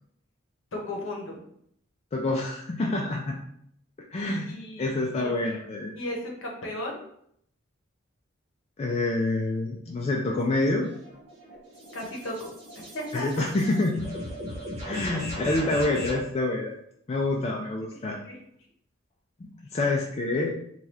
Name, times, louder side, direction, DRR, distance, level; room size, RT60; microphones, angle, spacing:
voice 1, 0.7-1.5 4.2-5.3 5.9-7.0 11.9-13.5 17.9-18.4, left 1 dB, 65° left, 0 dB, 0.8 m, -36 dB
voice 2, 2.1-3.4 4.1-4.5 4.8-5.9 8.8-10.9 13.1-14.0 14.8-16.7 17.1-18.2 19.4-20.5, left 2 dB, 30° left, -1 dB, 0.3 m, -27 dB
sound 1, 10.8-16.3, equal, 30° right, 1.1 m, -37 dB
2.7 x 2.3 x 3.3 m, 0.69 s
head